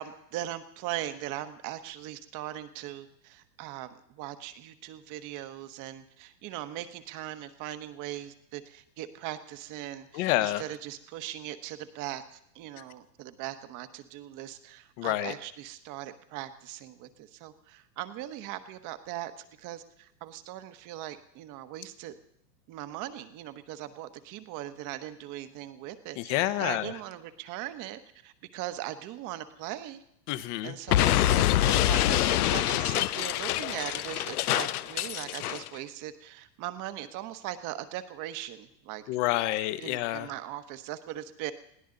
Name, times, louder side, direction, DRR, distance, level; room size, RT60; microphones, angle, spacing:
voice 1, 0.0-22.2 22.7-30.0 30.6-39.0 39.8-41.5, right 13 dB, 40° right, 11 dB, 1.3 m, -39 dB
voice 2, 10.1-10.6 12.8-12.9 15.0-15.3 26.2-26.9 30.3-30.7 39.1-40.3, left 16 dB, 45° left, 13 dB, 1.2 m, -28 dB
Explosion, 30.9-35.7, left 14 dB, 65° left, 0.7 m, -25 dB
21.0 x 16.5 x 3.9 m, 0.76 s
hypercardioid pair, 110°, 49 cm